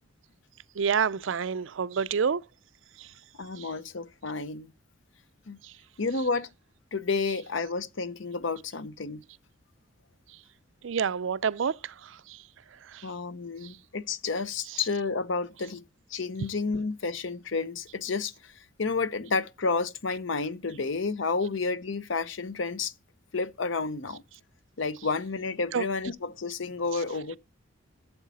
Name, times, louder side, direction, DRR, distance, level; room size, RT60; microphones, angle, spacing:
voice 1, 0.8-2.4 3.0-3.1 3.6-3.7 10.8-11.9 12.3-12.4 12.9-13.0 25.7-25.8, right 6 dB, 70° right, 0.5 m, -28 dB
voice 2, 3.4-4.7 5.5-5.6 6.0-6.5 6.9-9.2 13.0-15.8 16.1-18.5 18.8-22.9 23.3-24.2 24.8-27.4, left 4 dB, 70° left, 0.7 m, -30 dB
12.5 x 7.4 x 4.1 m
head